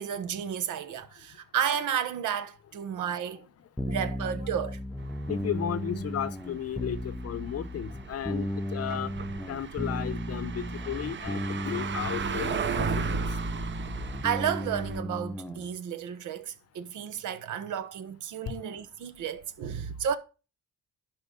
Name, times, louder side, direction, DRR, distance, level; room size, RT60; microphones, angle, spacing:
voice 1, 0.0-3.5 3.9-4.8 14.2-20.2, right 8 dB, 80° right, 1.1 m, -32 dB
sound 1, 3.8-15.6, equal, 5° left, 0.7 m, -35 dB
sound 2, 5.0-15.0, right 5 dB, 40° right, 0.8 m, -36 dB
voice 2, 5.3-9.1 9.5-13.1 18.5-18.6, left 9 dB, 55° left, 0.7 m, -34 dB
11.5 x 4.5 x 5.2 m
cardioid pair, 90°, 30 cm